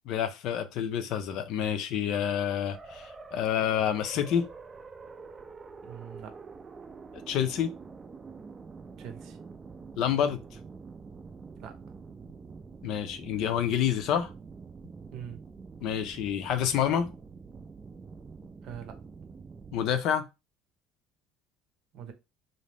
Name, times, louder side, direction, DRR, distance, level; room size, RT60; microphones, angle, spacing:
voice 1, 0.1-4.5 7.3-7.7 10.0-10.4 12.8-14.3 15.8-17.1 19.7-20.3, left 9 dB, 65° left, 0.5 m, -28 dB
sound 1, 2.7-20.0, right 4 dB, 25° right, 0.4 m, -46 dB
voice 2, 5.8-6.4 9.0-9.4 11.6-11.8 15.1-15.4 18.6-19.0 21.9-22.1, right 9 dB, 65° right, 0.7 m, -43 dB
2.6 x 2.0 x 3.3 m
supercardioid pair, 100°, 0 cm